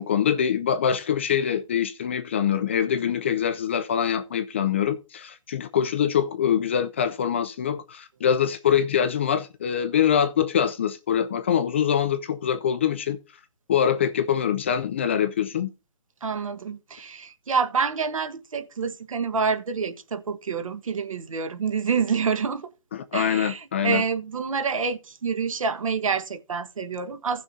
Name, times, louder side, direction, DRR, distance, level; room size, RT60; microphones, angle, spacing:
voice 1, 0.0-13.2 13.7-15.7 22.9-24.0, left 8 dB, 20° left, 0.4 m, -24 dB
voice 2, 16.2-22.7 23.1-27.4, right 5 dB, 60° right, 1.4 m, -27 dB
16.5 x 6.2 x 2.7 m
hypercardioid pair, 150°, 19 cm